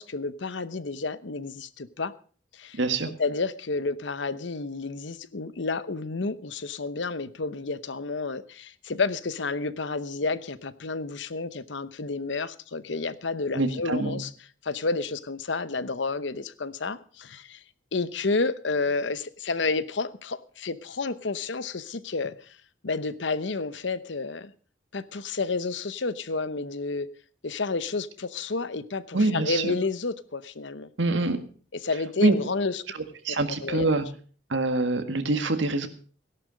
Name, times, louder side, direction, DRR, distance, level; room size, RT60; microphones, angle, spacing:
voice 1, 0.0-2.1 2.5-2.8 3.2-14.3 14.6-17.6 17.9-22.6 22.8-24.5 24.9-27.1 27.4-30.9 31.7-32.8 33.3-33.9, left 3 dB, 75° left, 0.9 m, -30 dB
voice 2, 2.8-3.1 13.5-14.2 29.1-29.8 31.0-31.4 32.2-32.3 33.2-34.1 34.5-35.9, right 2 dB, 75° right, 1.7 m, -24 dB
17.0 x 11.5 x 5.2 m
head